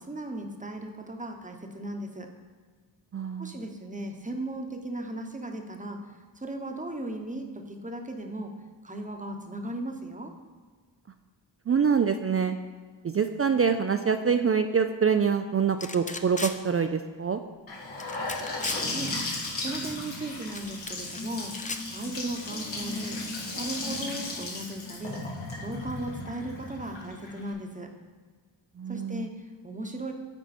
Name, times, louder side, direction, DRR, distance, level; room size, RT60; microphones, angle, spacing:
voice 1, 0.0-2.3 3.4-6.0 6.4-8.5 8.8-10.3 18.9-19.2 19.6-21.6 21.9-23.2 23.6-25.2 25.6-27.9 28.9-30.1, right 1 dB, 15° right, 4 dB, 1.0 m, -36 dB
voice 2, 3.1-3.6 11.7-12.6 13.0-17.4 28.8-29.3, right 6 dB, 35° right, 7 dB, 0.4 m, -25 dB
sound 1, 15.8-16.6 18.0-18.8 20.5-21.2 21.5-21.8, left 3 dB, 15° left, 0.5 m, -36 dB
Gurgling / Sink (filling or washing) / Bathtub (filling or washing), 17.7-27.5, left 2 dB, 80° left, 1.8 m, -35 dB
8.9 x 4.5 x 4.3 m, 1.5 s
cardioid pair, 40°, 45 cm